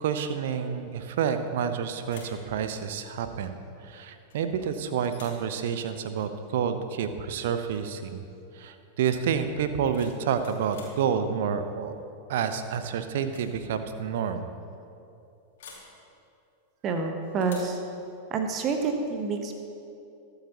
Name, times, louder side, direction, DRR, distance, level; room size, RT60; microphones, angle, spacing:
voice 1, 0.0-8.2 8.5-12.0 12.3-14.5, right 7 dB, 55° right, 9 dB, 0.8 m, -29 dB
sound 1, 1.4-1.7 2.0-2.5 4.3-4.7 5.0-5.5 7.3-7.5 7.8-8.2 9.6-11.0 12.5-12.8 13.2-13.5 13.8-13.9 15.6-15.9 17.4-17.8, left 4 dB, 55° left, 2.8 m, -50 dB
voice 2, 16.8-17.8 18.3-19.6, right 4 dB, 30° right, 5 dB, 1.2 m, -28 dB
22.0 x 8.1 x 3.0 m, 2.7 s
figure-of-eight pair, 90°, 0 cm